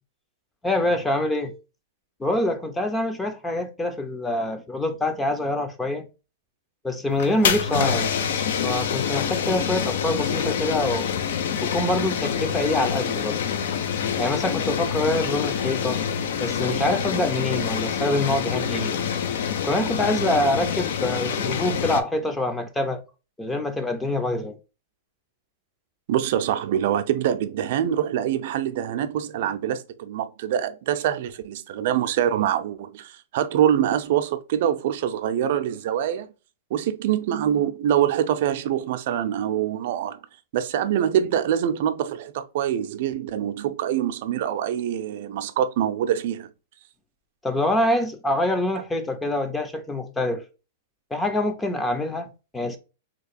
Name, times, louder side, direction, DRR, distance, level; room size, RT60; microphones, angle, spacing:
voice 1, 0.6-1.5 2.2-6.1 6.8-8.1 8.6-11.1 11.6-13.4 14.2-16.0 16.4-18.9 19.6-23.0 23.4-24.6 47.4-50.4 51.1-52.8, left 1 dB, 10° left, 0.5 m, -25 dB
sound 1, 7.1-22.0, left 7 dB, 70° left, 0.5 m, -26 dB
voice 2, 26.1-36.3 36.7-40.2 40.5-46.5, right 10 dB, 60° right, 0.5 m, -24 dB
2.9 x 2.3 x 4.2 m
hypercardioid pair, 135°, 0 cm